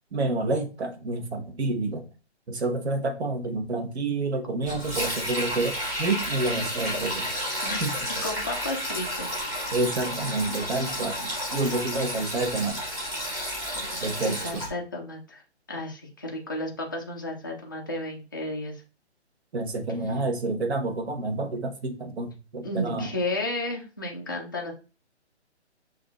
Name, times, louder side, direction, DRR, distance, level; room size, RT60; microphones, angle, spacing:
voice 1, 0.1-2.0 2.5-7.3 7.8-7.9 9.7-12.8 14.0-14.6 19.5-23.1, right 2 dB, 65° right, 5 dB, 1.1 m, -29 dB
Sink (filling or washing), 4.6-14.7, equal, 10° right, 0.9 m, -31 dB
voice 2, 7.6-7.9 8.2-9.3 13.7-15.4 15.7-18.8 20.1-20.2 22.6-24.7, left 1 dB, 20° left, -1 dB, 0.3 m, -33 dB
6.1 x 2.6 x 2.3 m, 0.33 s
hypercardioid pair, 150°, 34 cm